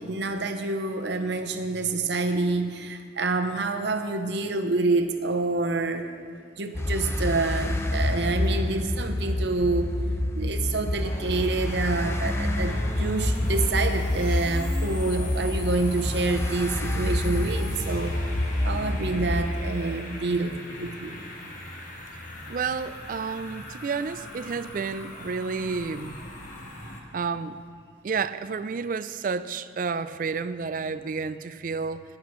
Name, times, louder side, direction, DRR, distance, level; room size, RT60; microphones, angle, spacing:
voice 1, 0.0-6.1 6.6-9.9 10.3-18.1 18.6-21.2, right 3 dB, 60° right, 6 dB, 0.8 m, -27 dB
sound 1, 6.7-19.5, left 1 dB, 15° left, 0.5 m, -27 dB
sound 2, 11.0-27.0, left 1 dB, 40° left, 1.4 m, -40 dB
voice 2, 22.5-26.2 27.1-27.6 28.0-32.0, right 5 dB, 45° right, 13 dB, 0.3 m, -30 dB
17.0 x 11.0 x 3.1 m, 2.1 s
head